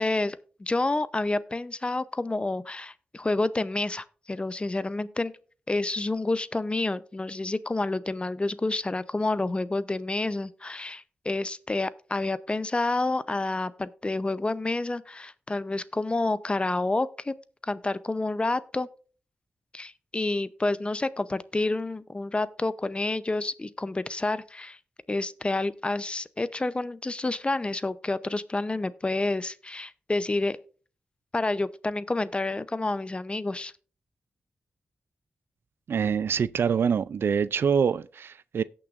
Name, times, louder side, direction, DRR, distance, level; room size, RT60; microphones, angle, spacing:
voice 1, 0.0-5.3 5.7-17.3 17.6-18.9 19.7-24.8 25.1-30.6 31.3-33.7, left 2 dB, 25° left, 0.6 m, -29 dB
voice 2, 35.9-38.6, right 7 dB, 75° right, 0.3 m, -25 dB
17.5 x 6.1 x 2.5 m
cardioid pair, 60°, 4 cm